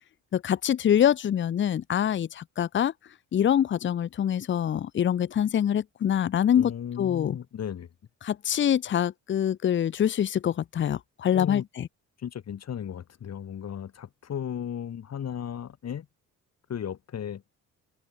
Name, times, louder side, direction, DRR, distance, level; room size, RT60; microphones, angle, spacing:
voice 1, 0.3-2.9 3.3-6.7 7.0-7.4 8.2-11.9, left 9 dB, 40° left, 0.7 m, -25 dB
voice 2, 6.6-7.9 11.3-11.6 12.2-16.1 16.7-17.4, left 9 dB, 55° left, 4.3 m, -35 dB
open air
cardioid pair, 90°, 30 cm